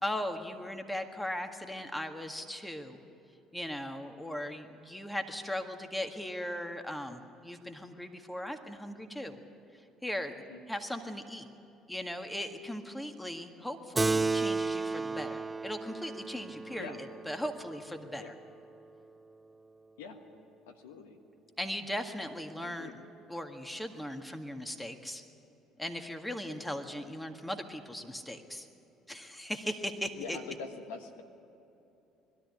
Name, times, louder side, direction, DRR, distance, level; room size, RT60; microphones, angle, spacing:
voice 1, 0.0-3.0 3.5-9.4 10.0-10.3 10.7-11.5 11.9-17.0 17.3-18.3 21.6-22.9 23.3-25.2 25.8-28.7 29.1-30.4, left 1 dB, 5° left, 5 dB, 1.8 m, -38 dB
Keyboard (musical), 14.0-18.8, right 3 dB, 20° right, 0.4 m, -33 dB
voice 2, 20.7-21.2 22.6-22.9 30.1-31.2, left 5 dB, 85° left, 6 dB, 1.4 m, -44 dB
21.5 x 13.0 x 9.7 m, 2.9 s
hypercardioid pair, 65°, 0 cm